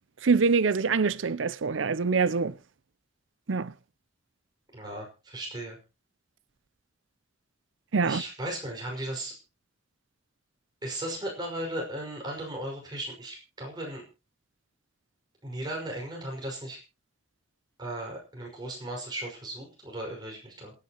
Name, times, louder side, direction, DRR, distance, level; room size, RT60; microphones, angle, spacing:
voice 1, 0.2-2.5 3.5-3.7 7.9-8.2, right 4 dB, 80° right, 0.6 m, -24 dB
voice 2, 4.7-5.8 8.0-9.4 10.8-14.0 15.4-16.8 17.8-20.7, right 1 dB, 20° right, 5.7 m, -36 dB
27.0 x 9.9 x 3.0 m
head